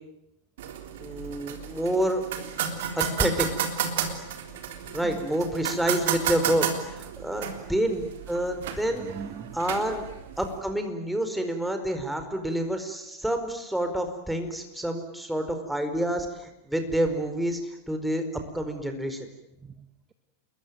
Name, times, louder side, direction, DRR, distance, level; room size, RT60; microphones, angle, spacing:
sound 1, 0.6-10.6, right 8 dB, 55° right, 3.5 m, -32 dB
voice 1, 1.0-2.2 3.0-3.5 4.9-9.1 9.5-10.1 10.4-18.2 18.5-19.3, right 1 dB, 5° right, 6 dB, 4.6 m, -28 dB
voice 2, 4.6-5.3 7.4-7.7 8.9-9.6 19.6-20.1, right 6 dB, 20° right, 9 dB, 1.7 m, -43 dB
28.5 x 22.0 x 9.2 m, 0.86 s
figure-of-eight pair, 90°, 0 cm